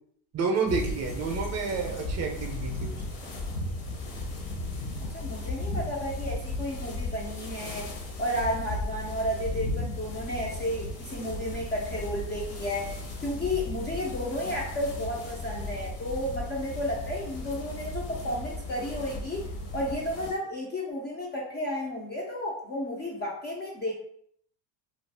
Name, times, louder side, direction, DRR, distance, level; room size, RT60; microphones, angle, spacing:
voice 1, 0.3-3.0, right 4 dB, 35° right, 2 dB, 0.5 m, -29 dB
sound 1, 0.6-20.3, left 2 dB, 60° left, 0.9 m, -36 dB
voice 2, 5.1-7.9 8.2-12.9 13.2-24.0, left 1 dB, 25° left, -3 dB, 0.3 m, -32 dB
2.5 x 2.3 x 3.3 m, 0.67 s
supercardioid pair, 115°, 49 cm